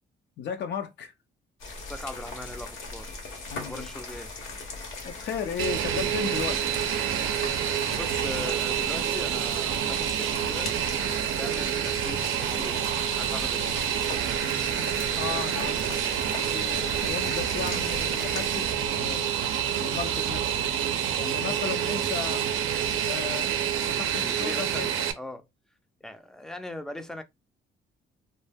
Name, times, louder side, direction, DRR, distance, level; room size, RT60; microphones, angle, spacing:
voice 1, 0.4-1.1 3.5-3.9 5.0-6.8 15.2-16.0 16.4-19.3 19.7-20.7 21.2-22.4 23.0-23.5 23.9-25.1, left 7 dB, 60° left, 0.5 m, -35 dB
sound 1, 1.6-18.6, left 3 dB, 85° left, 0.9 m, -39 dB
voice 2, 1.8-3.2 3.6-4.3 7.8-10.7 11.1-13.8 24.2-24.9 25.2-25.4 26.0-27.2, left 1 dB, 5° left, 0.4 m, -40 dB
Fixed-wing aircraft airplane, 5.6-25.1, right 9 dB, 85° right, 0.5 m, -28 dB
2.2 x 2.0 x 3.3 m
cardioid pair, 90°, 20 cm